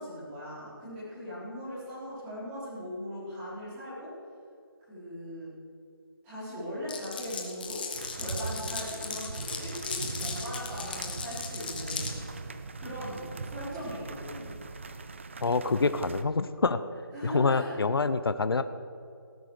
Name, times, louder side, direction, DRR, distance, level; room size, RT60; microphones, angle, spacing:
voice 1, 0.0-4.1 4.9-5.5 6.2-12.0 12.7-14.6 17.1-17.9, equal, 10° right, -11 dB, 4.8 m, -39 dB
Glass, 6.9-12.1, left 5 dB, 25° left, 1.3 m, -37 dB
sound 1, 7.9-16.2, right 4 dB, 30° right, 0.7 m, -40 dB
voice 2, 15.4-16.8 17.2-18.6, left 4 dB, 75° left, 12 dB, 0.8 m, -26 dB
17.5 x 9.5 x 6.6 m, 2.5 s
figure-of-eight pair, 175°, 12 cm